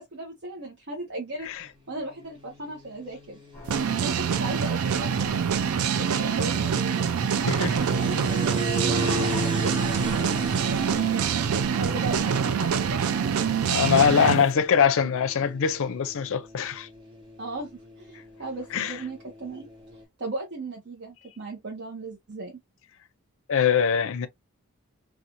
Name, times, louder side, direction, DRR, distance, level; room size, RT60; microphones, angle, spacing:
voice 1, 0.0-1.5 1.9-3.4 3.9-7.2 7.6-13.1 14.1-14.4 17.4-19.7 20.2-22.6, right 2 dB, 55° right, 0.8 m, -37 dB
sound 1, 2.0-20.0, right 1 dB, 25° right, 0.9 m, -37 dB
Church bell, 3.5-14.1, left 1 dB, 15° left, 1.1 m, -46 dB
sound 2, 3.7-14.4, right 7 dB, 70° right, 0.4 m, -25 dB
voice 2, 7.4-7.7 13.7-16.9 18.7-19.0 23.5-24.3, left 7 dB, 65° left, 0.5 m, -23 dB
2.5 x 2.3 x 2.8 m
head